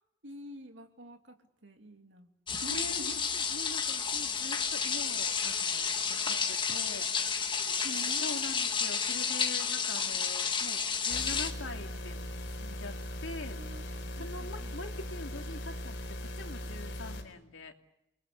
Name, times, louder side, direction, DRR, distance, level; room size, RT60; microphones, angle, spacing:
voice 1, 0.2-1.4 1.6-2.3 2.6-3.2 6.3-6.4 7.5-8.3 9.7-9.8 13.5-13.8 14.2-14.7, equal, 70° right, 5 dB, 2.8 m, -46 dB
sound 1, 2.5-11.5, left 6 dB, 25° left, 1.7 m, -31 dB
voice 2, 2.7-7.4 8.2-12.9 13.2-13.7 14.1-17.7, left 2 dB, 85° left, 4 dB, 2.6 m, -44 dB
sound 2, 11.1-17.2, left 1 dB, 55° left, 4.4 m, -39 dB
29.0 x 20.5 x 8.4 m, 0.89 s
head